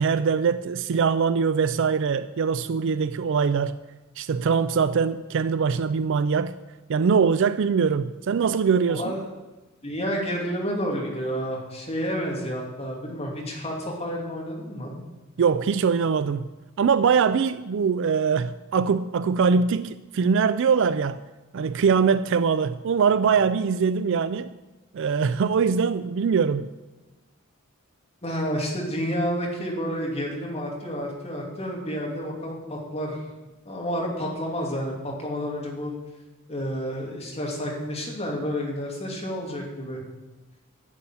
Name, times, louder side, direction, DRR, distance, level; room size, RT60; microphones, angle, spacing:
voice 1, 0.0-3.8 4.2-6.5 6.9-9.1 15.4-16.5 16.8-21.2 21.5-24.5 24.9-26.7, right 6 dB, 60° right, 0.4 m, -22 dB
voice 2, 8.9-9.3 9.8-15.0 28.2-33.2 33.6-35.9 36.5-40.0, equal, 30° left, 2.6 m, -30 dB
11.0 x 7.0 x 9.4 m
head